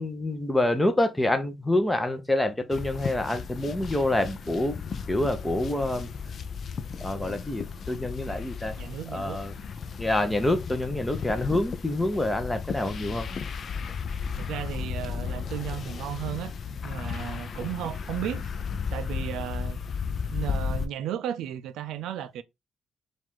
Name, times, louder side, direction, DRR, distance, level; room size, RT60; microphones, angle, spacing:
voice 1, 0.0-4.8 5.1-6.1 7.0-8.8 9.1-9.5 10.0-13.3, left 1 dB, 10° left, 0.8 m, -27 dB
sound 1, 2.7-20.9, left 6 dB, 50° left, 0.5 m, -34 dB
voice 2, 8.8-9.4 14.4-16.5 16.8-18.5 18.9-19.8 20.3-22.4, right 10 dB, 85° right, 0.3 m, -34 dB
4.7 x 2.5 x 3.6 m
cardioid pair, 90°, 0 cm